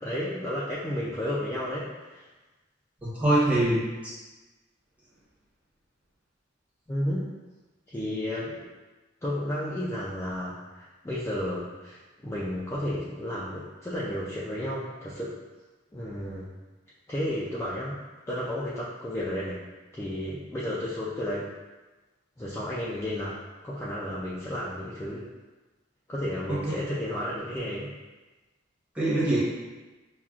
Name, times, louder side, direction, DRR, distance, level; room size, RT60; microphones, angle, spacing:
voice 1, 0.0-2.3 6.9-7.3 7.9-8.7 9.2-15.3 15.9-16.5 17.1-18.0 18.3-19.6 19.9-21.5 22.4-23.4 23.6-25.3 26.1-27.9, left 1 dB, 15° left, -8 dB, 0.3 m, -32 dB
voice 2, 3.0-3.9 26.5-26.8 28.9-29.4, right 1 dB, 10° right, -9 dB, 1.0 m, -24 dB
5.8 x 2.2 x 2.4 m, 1.2 s
head